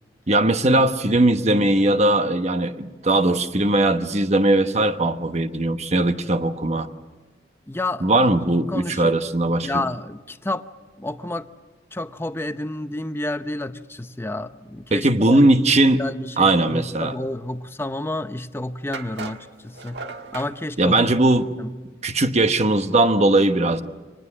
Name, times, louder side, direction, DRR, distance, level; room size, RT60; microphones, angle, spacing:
voice 1, 0.3-6.9 8.0-9.9 14.9-16.0 16.4-17.1 20.8-21.5 22.0-23.8, right 2 dB, 40° right, 9 dB, 1.1 m, -19 dB
voice 2, 7.7-8.3 8.7-9.2 9.6-10.6 11.0-11.5 11.9-15.4 15.8-20.1 20.3-21.0 21.6-21.7, left 2 dB, 15° left, 11 dB, 0.7 m, -30 dB
sound 1, 18.9-20.5, right 4 dB, 70° right, 1.6 m, -36 dB
25.0 x 19.5 x 7.5 m, 1.3 s
head